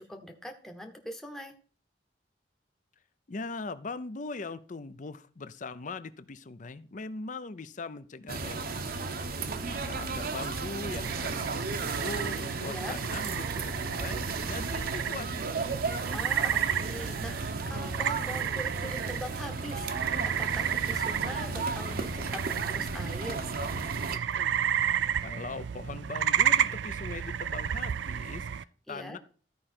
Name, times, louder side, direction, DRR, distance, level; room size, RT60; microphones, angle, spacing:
voice 1, 0.0-1.6 12.7-13.0 16.1-23.5 28.9-29.2, left 1 dB, 5° left, 3 dB, 0.9 m, -42 dB
voice 2, 3.3-8.9 9.7-15.3 21.3-21.7 25.2-29.2, left 3 dB, 45° left, 14 dB, 0.6 m, -41 dB
sound 1, 8.3-24.2, right 3 dB, 55° right, 0.8 m, -34 dB
sound 2, 11.0-28.6, right 9 dB, 75° right, 0.4 m, -32 dB
13.5 x 5.0 x 4.4 m, 0.43 s
head